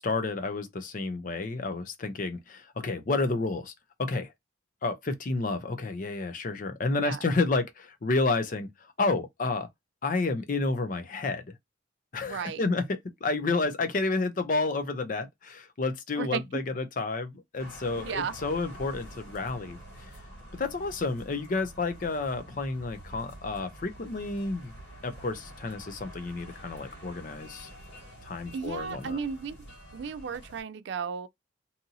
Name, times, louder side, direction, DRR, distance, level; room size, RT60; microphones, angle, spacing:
voice 1, 0.0-3.7 4.0-4.3 4.8-8.7 9.0-9.7 10.0-11.4 12.1-12.8 13.2-19.8 20.5-24.7 25.0-27.7 28.2-29.2, left 3 dB, 45° left, 0.5 m, -30 dB
voice 2, 12.2-12.6 16.1-16.6 18.0-18.3 28.5-29.7 29.9-31.3, right 6 dB, 60° right, 0.3 m, -34 dB
sound 1, 17.6-30.6, equal, 65° left, 1.7 m, -47 dB
2.7 x 2.6 x 2.6 m
head